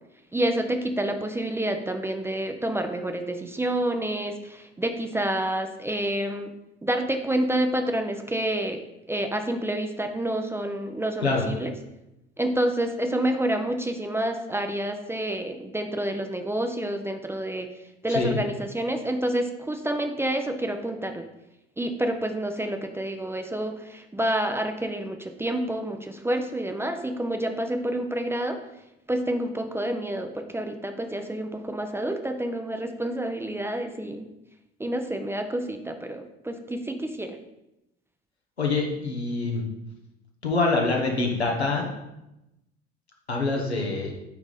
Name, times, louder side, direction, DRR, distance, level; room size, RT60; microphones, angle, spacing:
voice 1, 0.3-6.5 6.8-8.8 9.1-11.7 12.4-17.7 18.0-21.3 21.8-28.6 29.1-34.3 34.8-37.4, right 1 dB, 10° right, 6 dB, 0.5 m, -28 dB
voice 2, 38.6-39.6 40.4-41.8 43.3-44.1, left 3 dB, 85° left, 0 dB, 1.0 m, -25 dB
8.9 x 3.5 x 3.9 m, 0.91 s
figure-of-eight pair, 60°, 31 cm